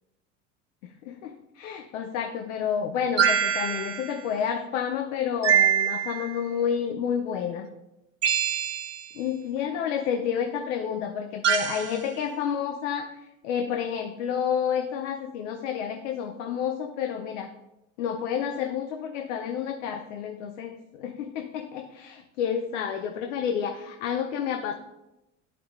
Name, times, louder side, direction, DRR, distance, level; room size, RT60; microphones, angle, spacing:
voice 1, 1.0-7.7 9.2-13.1 13.4-17.5 18.0-24.7, left 8 dB, 80° left, 5 dB, 0.8 m, -30 dB
sound 1, 3.2-4.1 5.4-6.4 8.2-9.1 11.4-12.0, right 8 dB, 45° right, 1.5 m, -24 dB
11.5 x 5.0 x 2.3 m, 0.93 s
hypercardioid pair, 85°, 37 cm